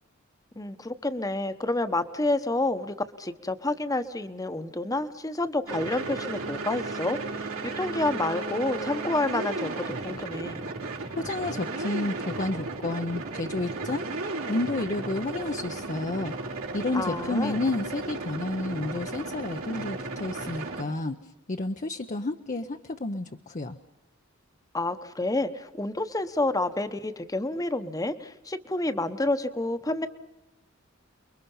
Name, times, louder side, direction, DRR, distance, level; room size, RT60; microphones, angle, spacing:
voice 1, 0.6-10.6 16.9-17.6 24.7-30.1, left 2 dB, 15° left, 10 dB, 1.1 m, -29 dB
sound 1, 5.7-20.8, right 3 dB, 80° right, 5.0 m, -34 dB
voice 2, 11.2-14.0 14.5-16.3 16.7-23.8, left 2 dB, 35° left, 6 dB, 0.8 m, -31 dB
29.5 x 22.5 x 5.6 m, 0.97 s
head